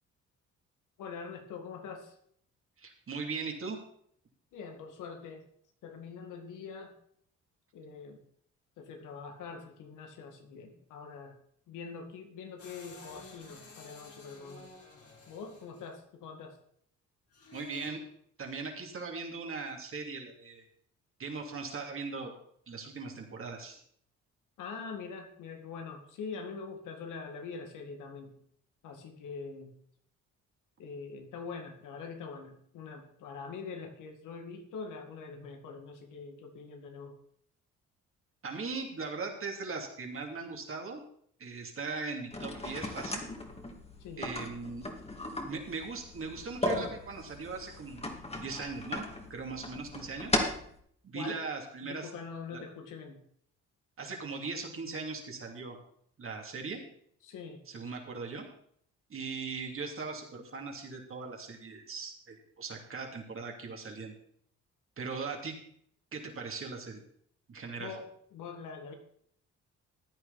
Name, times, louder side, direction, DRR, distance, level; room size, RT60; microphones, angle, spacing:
voice 1, 1.0-2.2 4.5-5.4 5.8-6.9 7.7-8.2 8.8-11.4 11.7-14.7 15.3-16.6 24.6-28.4 28.8-29.8 30.8-37.2 44.0-44.3 51.1-51.5 51.8-53.2 57.2-57.6 67.8-68.9, left 5 dB, 90° left, 5 dB, 2.1 m, -44 dB
voice 2, 2.8-3.8 17.5-18.0 18.4-20.6 21.2-22.3 22.7-23.8 38.4-41.0 41.4-43.3 44.2-44.8 45.4-48.1 48.4-50.4 51.0-52.1 52.5-52.6 54.0-55.8 56.2-56.8 57.7-58.5 59.1-64.1 65.0-65.6 66.1-67.0 67.5-67.9, right 4 dB, 45° right, 1 dB, 2.9 m, -39 dB
sound 1, 12.6-15.9 17.3-17.9, left 3 dB, 50° left, 2.8 m, -52 dB
sound 2, 42.3-50.7, left 1 dB, 20° left, 2.2 m, -37 dB
14.5 x 9.4 x 4.1 m, 0.65 s
cardioid pair, 90°, 30 cm